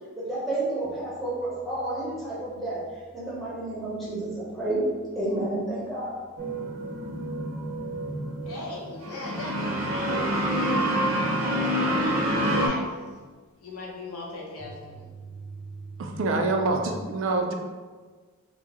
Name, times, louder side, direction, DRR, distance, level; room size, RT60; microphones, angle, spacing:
voice 1, 0.2-2.8 3.1-4.8 5.1-6.1, right 2 dB, ahead, -9 dB, 0.8 m, -30 dB
sound 1, 0.8-5.7 6.0-6.2 6.6-6.7 7.2-7.3 12.4-12.5 14.6-16.9, right 4 dB, 20° left, 0.4 m, -46 dB
sound 2, 6.4-12.7, equal, 85° right, 0.7 m, -27 dB
voice 2, 8.4-10.5 11.3-12.8 13.6-15.0, left 2 dB, 85° left, -3 dB, 0.8 m, -38 dB
voice 3, 16.0-17.5, right 3 dB, 60° right, 3 dB, 0.3 m, -26 dB
2.9 x 2.0 x 3.4 m, 1.4 s
head